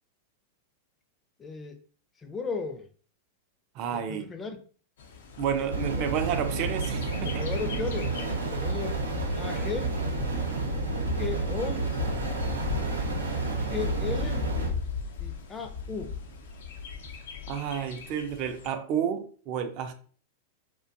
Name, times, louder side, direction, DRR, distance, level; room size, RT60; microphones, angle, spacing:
voice 1, 1.4-1.8 2.2-2.9 3.9-4.6 6.0-6.1 7.3-8.2 8.5-9.0 9.4-10.0 11.2-11.9 13.6-14.6 15.2-16.2, left 4 dB, 20° left, 6 dB, 0.5 m, -35 dB
voice 2, 3.8-4.3 5.4-7.5 17.5-19.9, right 8 dB, 45° right, 7 dB, 0.5 m, -31 dB
Bird, 5.0-18.7, left 6 dB, 65° left, 0.5 m, -38 dB
sound 1, 5.7-14.7, right 3 dB, 85° right, 0.7 m, -30 dB
2.5 x 2.2 x 2.6 m, 0.42 s
hypercardioid pair, 100°, 0 cm